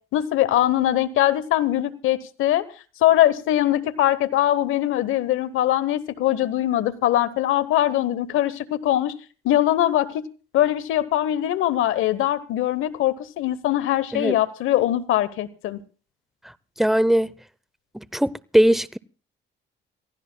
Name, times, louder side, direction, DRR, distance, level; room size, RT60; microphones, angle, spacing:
voice 1, 0.1-2.6 3.0-9.1 9.4-10.2 10.5-15.8, left 13 dB, 80° left, 1.0 m, -22 dB
voice 2, 16.8-17.3 17.9-19.0, equal, ahead, 0.6 m, -20 dB
28.0 x 15.5 x 2.2 m
supercardioid pair, 70°, 21 cm